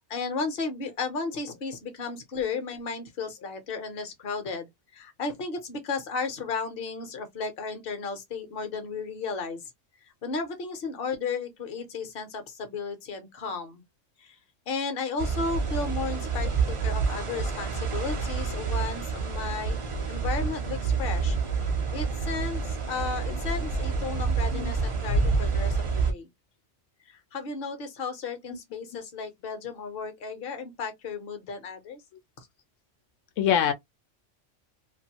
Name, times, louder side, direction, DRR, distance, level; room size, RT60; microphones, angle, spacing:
voice 1, 0.1-9.7 10.0-13.8 14.2-14.4 14.7-19.8 20.1-21.4 21.9-26.3 27.1-32.0, left 4 dB, 55° left, 1.0 m, -34 dB
sound 1, 15.2-26.1, right 4 dB, 35° right, 0.5 m, -28 dB
voice 2, 24.3-24.7 28.5-28.6 33.4-33.7, left 9 dB, 85° left, 1.0 m, -25 dB
2.6 x 2.5 x 2.8 m
omnidirectional pair, 1.3 m